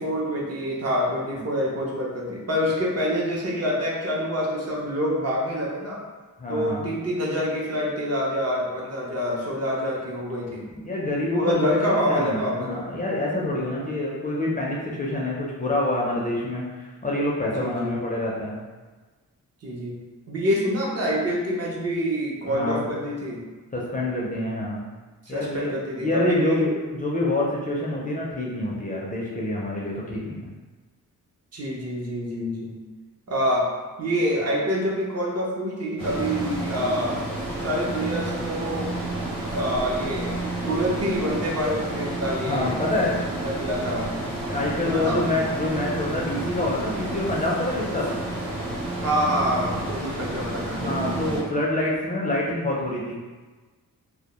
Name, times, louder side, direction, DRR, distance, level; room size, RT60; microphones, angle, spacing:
voice 1, 0.0-6.0 6.5-10.6 11.4-12.8 17.6-18.0 19.6-20.0 20.3-23.4 25.3-26.6 31.5-32.7 33.3-33.7 34.0-37.2 37.6-38.9 39.5-40.3 40.6-42.8 43.4-44.1 44.8-45.4 49.0-51.3, equal, 45° right, -4 dB, 0.6 m, -26 dB
voice 2, 6.4-6.9 10.7-18.6 22.5-22.9 23.7-24.8 25.3-25.7 26.0-30.5 42.5-43.2 44.5-48.2 50.0-50.2 50.7-53.2, left 1 dB, 25° left, -4 dB, 0.4 m, -27 dB
sound 1, 36.0-51.4, right 2 dB, 80° right, 0.8 m, -30 dB
2.1 x 2.1 x 2.8 m, 1.3 s
wide cardioid pair, 105°, 34 cm